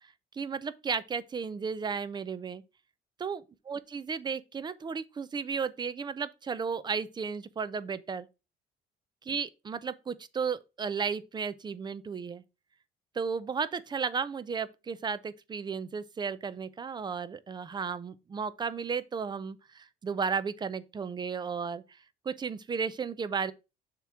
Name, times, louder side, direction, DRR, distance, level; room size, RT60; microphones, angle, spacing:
voice 1, 0.3-2.6 3.2-8.3 9.3-12.4 13.2-21.8 22.3-23.5, right 5 dB, 25° right, 0.5 m, -34 dB
6.8 x 3.0 x 4.8 m
cardioid pair, 110°, 17 cm